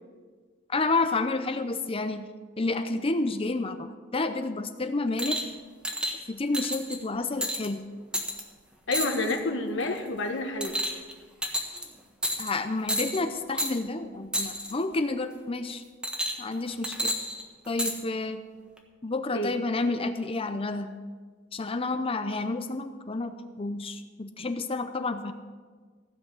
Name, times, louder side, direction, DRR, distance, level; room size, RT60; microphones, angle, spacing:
voice 1, 0.7-2.2 2.6-5.4 6.3-7.9 12.4-15.8 16.4-17.1 17.7-18.4 19.0-20.9 21.5-25.3, left 3 dB, 30° left, 9 dB, 0.6 m, -30 dB
sound 1, 5.2-5.5 5.8-6.1 6.5-7.0 7.4-7.7 8.1-8.4 8.9-9.4 9.8-10.1 10.6-11.1 11.4-11.8 12.2-12.6 12.9-13.2 13.6-13.7 14.3-14.7 16.0-16.5 16.8-17.9 18.8-18.9, equal, 5° right, 1.4 m, -30 dB
voice 2, 8.9-10.8 19.3-19.5, left 2 dB, 65° left, 4 dB, 1.6 m, -29 dB
15.5 x 6.2 x 8.4 m, 1.5 s
head